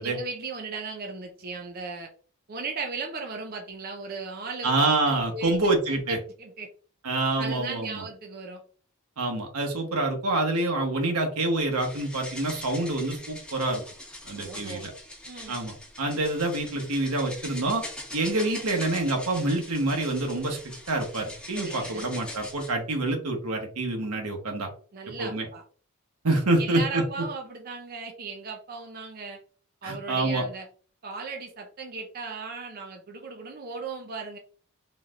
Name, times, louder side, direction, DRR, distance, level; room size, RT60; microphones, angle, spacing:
voice 1, 0.0-2.1 2.5-4.7 5.0-5.5 5.9-6.7 7.4-8.6 14.4-14.9 15.3-15.6 21.5-22.1 24.9-25.6 26.6-29.4 29.8-30.7 31.0-34.4, right 4 dB, 45° right, 2 dB, 0.5 m, -37 dB
voice 2, 4.6-6.2 7.0-8.0 9.2-13.8 14.2-14.9 15.5-17.8 18.1-24.7 25.2-25.5 26.2-27.0 29.8-30.4, right 2 dB, 85° right, 3 dB, 1.1 m, -27 dB
sound 1, 11.7-22.7, left 1 dB, 5° left, 1.1 m, -42 dB
4.0 x 3.1 x 2.5 m, 0.42 s
head